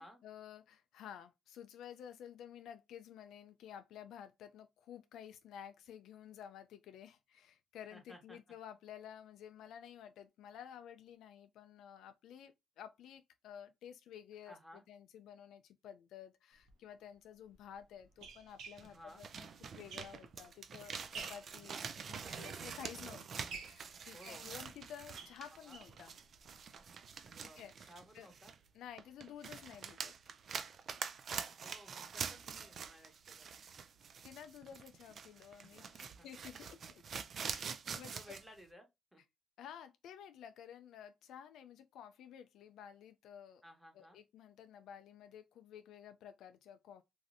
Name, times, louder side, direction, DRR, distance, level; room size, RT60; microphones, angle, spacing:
voice 1, 0.0-14.6 14.9-19.5 19.7-26.2 27.5-28.3 28.7-30.1 34.2-37.0 37.5-38.1 39.6-43.6 43.9-47.0, left 9 dB, 80° left, 0.3 m, -53 dB
voice 2, 7.9-8.4 14.4-14.8 18.8-19.2 24.1-24.5 25.6-25.8 27.3-27.6 27.9-28.5 31.6-33.7 35.6-36.3 37.4-39.2 43.6-44.2, equal, 5° right, 1.2 m, -58 dB
sound 1, 16.6-16.7 17.5-20.5 20.9-21.5 22.1-23.0 23.5-26.0 26.4-26.5 26.8-26.9 27.2-27.3, right 5 dB, 85° right, 0.7 m, -52 dB
sound 2, 18.8-28.7 29.0-38.4, right 6 dB, 55° right, 0.4 m, -46 dB
3.1 x 2.6 x 2.4 m
cardioid pair, 90°, 0 cm